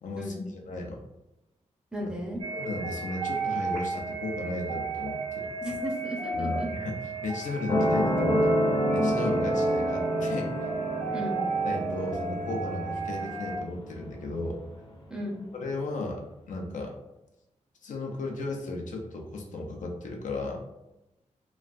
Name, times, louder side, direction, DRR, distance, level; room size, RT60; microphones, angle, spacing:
voice 1, 0.0-1.0 2.0-2.1 2.5-5.5 6.3-8.6 8.9-10.7 11.6-14.6 15.5-16.9 17.8-20.6, left 2 dB, 80° left, 1 dB, 0.5 m, -35 dB
voice 2, 1.9-2.4 5.6-6.7 11.1-11.4 15.1-15.4, right 1 dB, 5° right, -2 dB, 0.6 m, -35 dB
sound 1, 2.4-13.6, right 4 dB, 60° right, 0.6 m, -34 dB
sound 2, 7.7-14.7 15.6-15.7, equal, 40° left, 0.6 m, -28 dB
3.0 x 2.4 x 2.5 m, 0.92 s
wide cardioid pair, 140°, 13 cm